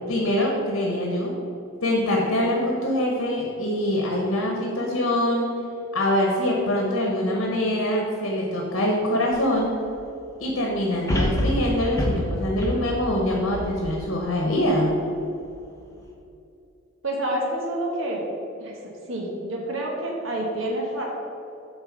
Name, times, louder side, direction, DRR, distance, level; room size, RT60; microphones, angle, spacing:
voice 1, 0.1-1.3 1.8-5.5 5.9-9.8 10.4-14.9, left 1 dB, 80° left, -1 dB, 1.1 m, -24 dB
sound 1, 9.3-9.4 11.1-14.4 14.9-15.0, equal, 15° left, 0.9 m, -27 dB
voice 2, 17.0-18.2 18.6-18.8 19.1-21.1, right 1 dB, 75° right, -1 dB, 1.2 m, -28 dB
7.8 x 3.9 x 6.0 m, 2.7 s
head